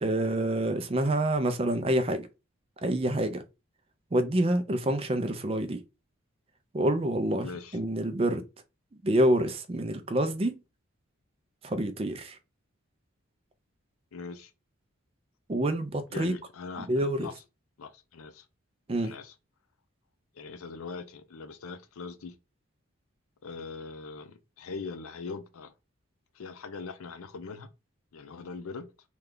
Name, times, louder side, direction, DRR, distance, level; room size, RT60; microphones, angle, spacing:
voice 1, 0.0-2.3 2.8-3.4 4.1-5.8 6.7-8.4 9.0-10.5 11.6-12.4 15.5-16.3 16.9-17.3 18.9-19.1, right 1 dB, 25° right, 0.4 m, -27 dB
voice 2, 7.4-7.8 14.1-14.5 16.1-17.4 17.8-18.5 19.0-19.3 20.3-22.3 23.4-25.7 26.3-27.7 28.1-28.9, left 4 dB, 80° left, 0.5 m, -41 dB
3.2 x 2.3 x 3.6 m
head